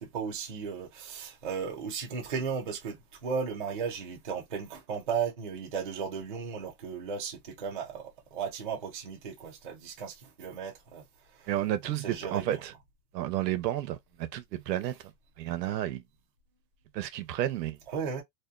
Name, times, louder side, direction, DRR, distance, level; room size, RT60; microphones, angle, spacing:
voice 1, 0.0-11.0 12.0-12.6 17.9-18.2, right 6 dB, 35° right, 0.4 m, -35 dB
voice 2, 11.5-12.7 13.1-14.9 15.4-16.0 16.9-17.8, right 13 dB, 80° right, 0.7 m, -31 dB
2.7 x 2.2 x 2.3 m
supercardioid pair, 175°, 49 cm